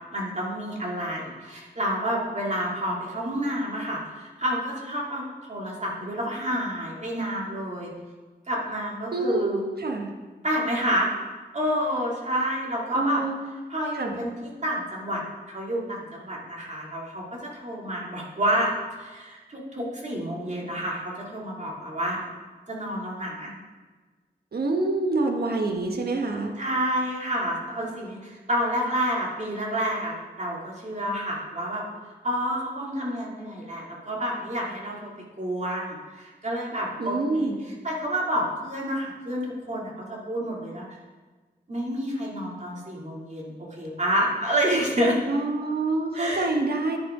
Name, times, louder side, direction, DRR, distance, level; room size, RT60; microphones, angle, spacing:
voice 1, 0.1-7.9 8.5-9.6 10.4-11.1 11.5-13.2 13.7-22.2 22.7-23.5 26.6-31.8 32.2-35.1 35.4-37.5 37.8-41.0 41.7-45.2 46.1-46.5, equal, 45° right, -3 dB, 2.9 m, -29 dB
voice 2, 9.1-10.1 12.9-13.4 14.0-14.2 24.5-26.5 37.0-37.6 45.3-47.0, right 2 dB, 65° right, 3 dB, 1.5 m, -26 dB
10.5 x 9.5 x 3.9 m, 1.4 s
cardioid pair, 50°, 17 cm